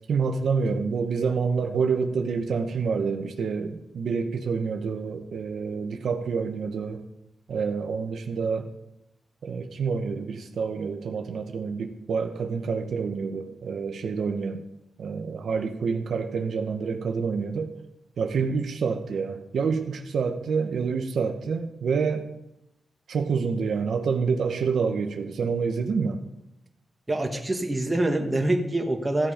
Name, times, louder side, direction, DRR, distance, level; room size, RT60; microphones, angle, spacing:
voice 1, 0.1-7.0 7.5-8.7 9.4-14.6 15.0-17.7 18.2-22.3 23.1-26.2, right 5 dB, 75° right, 5 dB, 1.1 m, -27 dB
voice 2, 27.1-29.3, right 1 dB, 15° right, 3 dB, 1.6 m, -25 dB
15.0 x 7.7 x 5.1 m, 0.85 s
cardioid pair, 100°, 0 cm